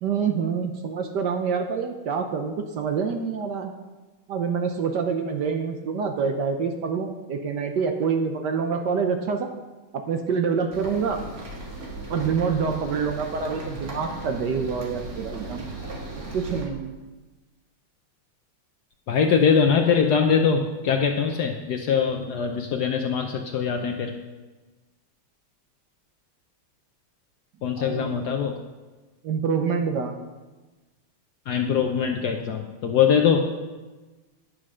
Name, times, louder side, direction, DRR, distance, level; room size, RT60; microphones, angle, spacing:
voice 1, 0.0-3.7 4.3-9.5 10.1-11.2 12.1-15.7 16.3-16.9 27.8-28.2 29.2-30.2, right 6 dB, 65° right, 5 dB, 1.2 m, -26 dB
sound 1, 10.7-16.6, right 2 dB, 45° right, 2.0 m, -37 dB
voice 2, 19.1-24.2 27.6-28.6 31.5-33.4, left 6 dB, 65° left, 4 dB, 1.0 m, -22 dB
9.9 x 6.3 x 6.2 m, 1.2 s
omnidirectional pair, 2.3 m